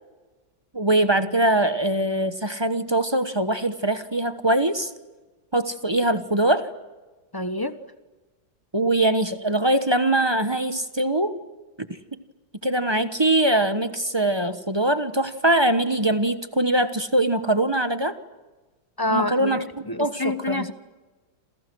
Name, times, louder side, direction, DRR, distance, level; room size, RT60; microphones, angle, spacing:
voice 1, 0.7-4.9 5.5-6.7 8.7-11.4 11.8-12.2 12.6-18.1 19.1-19.7 20.0-20.7, right 1 dB, 20° right, 10 dB, 0.8 m, -22 dB
voice 2, 7.3-7.7 19.0-20.7, left 2 dB, 15° left, 10 dB, 0.9 m, -27 dB
29.0 x 27.5 x 6.3 m, 1.2 s
omnidirectional pair, 2.1 m